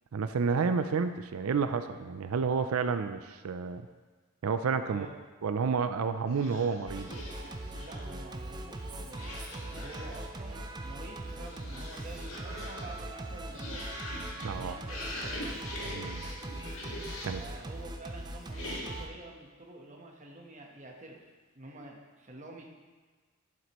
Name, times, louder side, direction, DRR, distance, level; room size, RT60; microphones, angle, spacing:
voice 1, 0.1-3.8 4.4-5.1 5.4-7.1 14.4-14.8 15.8-16.2 17.2-17.4, right 5 dB, 85° right, 10 dB, 0.4 m, -30 dB
sound 1, 6.3-8.2 9.1-10.3 11.0-17.5 18.5-19.2, left 1 dB, 75° left, 1.8 m, -43 dB
Singing, 6.9-19.1, right 2 dB, 20° right, 0.5 m, -41 dB
voice 2, 7.8-9.4 9.8-13.9 14.4-15.3 17.3-21.2 21.5-22.6, right 2 dB, 35° right, 0 dB, 1.1 m, -48 dB
11.0 x 7.6 x 3.0 m, 1.4 s
head